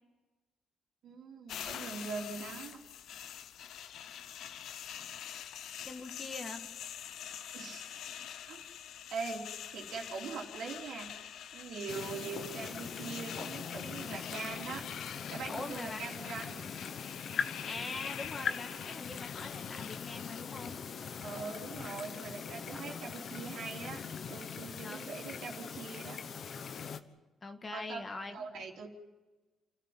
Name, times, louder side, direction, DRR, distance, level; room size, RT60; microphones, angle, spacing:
voice 1, 1.0-2.8 7.5-8.0 8.5-8.6 9.1-9.5 9.7-11.1 11.5-14.8 15.3-16.7 21.2-24.0 24.3-26.2 27.7-28.9, right 5 dB, 80° right, -3 dB, 3.4 m, -42 dB
sound 1, 1.5-20.4, left 9 dB, 75° left, 0.8 m, -45 dB
voice 2, 5.8-6.7 15.5-16.0 17.7-20.8 24.8-25.1 27.4-28.5, left 3 dB, 30° left, 6 dB, 2.0 m, -43 dB
sound 2, 11.9-27.0, left 6 dB, 55° left, 1.2 m, -41 dB
29.5 x 13.0 x 9.4 m, 1.2 s
cardioid pair, 90°, 0 cm